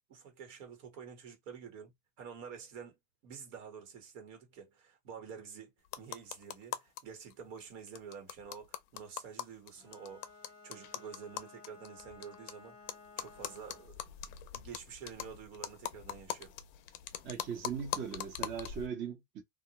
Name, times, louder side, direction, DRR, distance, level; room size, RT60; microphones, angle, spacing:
voice 1, 0.1-10.3 10.6-14.0 14.5-16.5, right 6 dB, 75° right, 1.3 m, -49 dB
sound 1, 5.8-7.0 7.3-7.4 7.6-7.7 7.9-12.5 12.9-18.9, left 11 dB, 45° left, 0.5 m, -42 dB
Bowed string instrument, 9.8-14.0, left 4 dB, 10° left, 0.8 m, -56 dB
voice 2, 17.2-19.4, right 7 dB, 30° right, 0.7 m, -39 dB
2.3 x 2.1 x 2.9 m
supercardioid pair, 145°, 37 cm